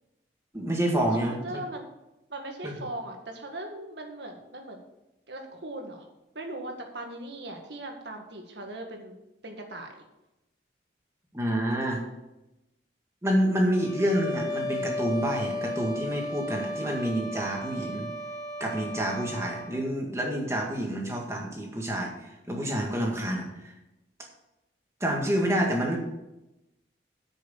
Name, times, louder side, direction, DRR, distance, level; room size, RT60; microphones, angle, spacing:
voice 1, 0.5-1.6 2.6-2.9 11.3-12.0 13.2-18.1 18.6-23.4 25.0-26.0, equal, 15° right, 0 dB, 1.9 m, -28 dB
voice 2, 1.2-1.8 2.3-4.8 5.3-6.0 6.4-10.0, right 1 dB, 70° right, 3 dB, 1.8 m, -39 dB
sound 1, 13.7-19.8, left 1 dB, 20° left, 1.4 m, -34 dB
8.8 x 6.4 x 7.1 m, 0.95 s
head